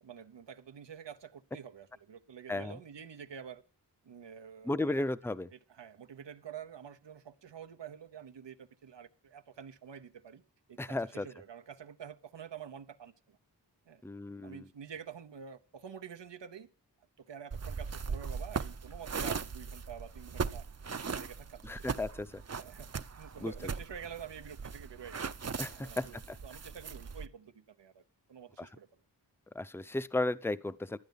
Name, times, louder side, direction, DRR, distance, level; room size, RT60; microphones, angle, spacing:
voice 1, 0.0-3.6 4.0-10.4 10.7-13.4 13.9-14.0 14.4-16.7 17.2-20.7 20.9-22.1 22.6-22.9 23.2-25.3 25.7-26.2 26.4-28.0 28.3-29.0, right 8 dB, 90° right, 0.8 m, -48 dB
voice 2, 4.7-5.5 10.8-11.3 14.0-14.7 21.6-22.4 23.4-23.5 25.6-26.1 28.6-28.7 29.5-31.0, left 2 dB, 5° left, 0.6 m, -34 dB
sound 1, 17.5-27.3, right 5 dB, 40° right, 0.6 m, -39 dB
12.0 x 9.2 x 5.3 m
cardioid pair, 40°, 42 cm